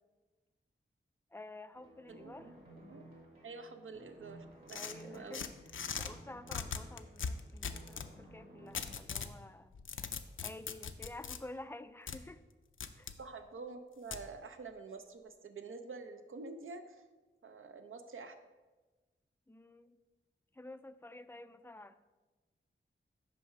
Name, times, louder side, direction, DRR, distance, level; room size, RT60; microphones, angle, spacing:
voice 1, 1.3-2.6 4.7-5.5 6.0-9.7 10.4-12.4 13.0-13.1 19.5-20.0 20.5-22.1, left 2 dB, 10° left, 13 dB, 0.3 m, -50 dB
sound 1, 1.7-8.9, right 1 dB, 50° right, 2.3 m, -56 dB
voice 2, 2.1-3.0 3.4-5.4 13.2-17.0 17.4-18.4, right 4 dB, 75° right, 7 dB, 0.6 m, -48 dB
sound 2, 4.7-6.1 6.5-8.1 8.7-9.3 9.7-11.4 12.1-12.2 12.8-13.2 14.1-14.2, left 6 dB, 70° left, 0.5 m, -40 dB
6.2 x 4.5 x 5.7 m, 1.2 s
wide cardioid pair, 65°, 21 cm